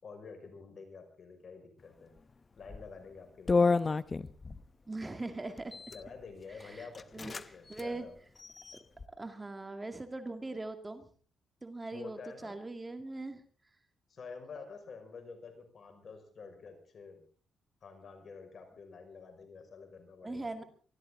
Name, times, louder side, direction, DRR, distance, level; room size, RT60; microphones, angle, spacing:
voice 1, 0.0-2.1 2.6-3.8 5.9-8.1 11.9-12.6 14.1-17.2 17.8-20.7, left 5 dB, 55° left, 6 dB, 5.9 m, -49 dB
sound 1, 2.6-2.9 3.5-4.6 5.6-6.0 6.6-6.7 6.9-7.5 7.7-7.9 8.4-9.0, left 4 dB, 35° left, 0.9 m, -30 dB
voice 2, 4.9-5.8 6.6-7.3 7.7-8.1 9.2-11.1 11.6-13.4 20.2-20.6, right 2 dB, 20° right, 8 dB, 2.2 m, -41 dB
24.0 x 13.5 x 3.9 m, 0.41 s
cardioid pair, 70°, 0 cm